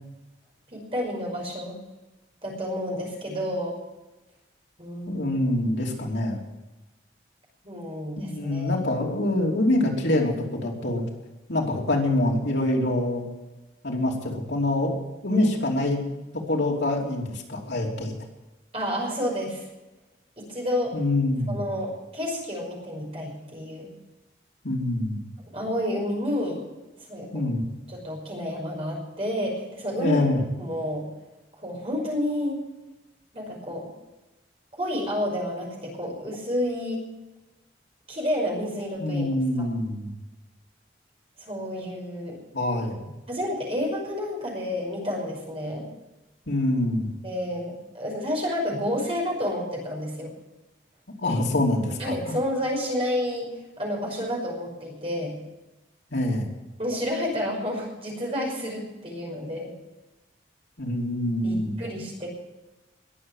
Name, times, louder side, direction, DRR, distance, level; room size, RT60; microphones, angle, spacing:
voice 1, 0.7-1.8 2.4-3.7 4.8-5.3 7.6-8.7 15.3-15.5 18.7-19.7 20.4-20.9 21.5-23.9 25.5-26.6 27.1-27.5 27.9-30.2 30.6-31.1 31.6-32.6 33.3-33.9 34.7-37.0 38.1-39.3 39.6-39.7 41.4-42.4 43.3-45.9 47.2-50.3 52.0-53.5 53.8-55.4 56.8-59.7 61.4-62.3, left 1 dB, 30° right, -2 dB, 5.5 m, -30 dB
voice 2, 5.1-6.4 8.2-11.0 11.5-13.2 13.8-15.0 15.2-16.0 16.3-18.1 20.9-21.6 24.6-25.3 27.3-27.6 30.0-30.4 39.0-40.2 42.5-43.1 46.5-47.1 51.2-52.4 56.1-56.5 60.8-61.8, left 1 dB, 80° left, 0 dB, 3.1 m, -25 dB
20.5 x 7.8 x 7.4 m, 1.1 s
head